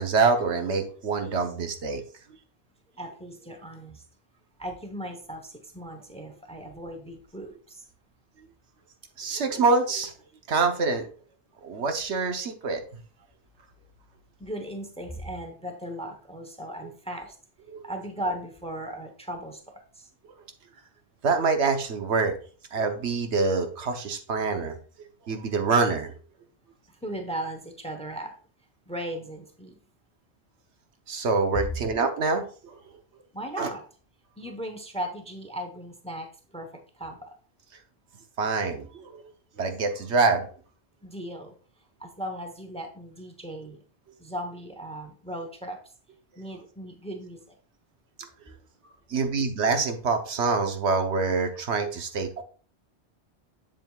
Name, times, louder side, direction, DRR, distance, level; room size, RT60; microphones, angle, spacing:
voice 1, 0.0-2.0 9.2-10.1 10.5-11.1 11.6-12.8 17.7-17.8 21.2-22.3 22.7-24.8 25.3-26.1 31.1-32.8 33.6-33.7 38.4-39.3 39.6-40.5 49.1-52.4, right 4 dB, 80° right, 5 dB, 1.2 m, -25 dB
voice 2, 2.9-4.0 4.6-7.9 14.4-17.4 17.8-20.1 26.9-28.4 28.9-29.8 33.3-33.8 34.4-37.3 41.0-41.5 42.0-43.8 44.2-45.8 46.4-47.6, right 1 dB, 5° left, 5 dB, 0.8 m, -37 dB
7.6 x 7.5 x 2.3 m, 0.41 s
omnidirectional pair, 1.2 m